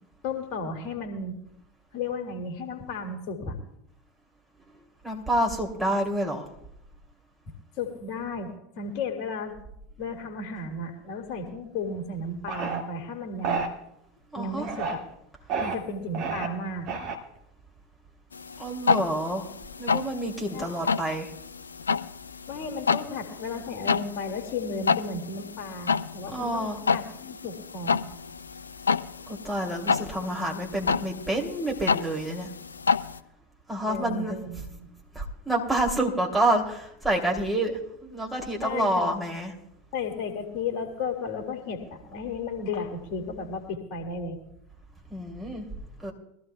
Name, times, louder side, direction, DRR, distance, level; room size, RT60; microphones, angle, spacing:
voice 1, 0.2-1.4 1.9-3.6 7.8-9.6 10.0-13.7 14.3-15.0 15.6-16.9 20.5-20.6 22.5-28.1 33.9-34.9 38.6-39.1 39.9-44.4, left 3 dB, 50° left, 3 dB, 2.0 m, -34 dB
voice 2, 5.0-6.5 14.3-14.7 18.6-19.5 19.8-21.3 26.3-26.8 29.3-32.5 33.7-34.3 35.1-39.5 45.1-45.6 46.0-46.1, right 1 dB, 10° right, -1 dB, 2.8 m, -28 dB
sound 1, 12.5-12.8 13.4-13.7 14.6-15.0 15.5-15.8 16.1-16.5 16.9-17.4, right 5 dB, 45° right, 2.0 m, -30 dB
sound 2, 18.3-33.2, left 5 dB, 80° left, 0.4 m, -30 dB
21.5 x 14.0 x 2.3 m, 0.79 s
figure-of-eight pair, 80°, 0 cm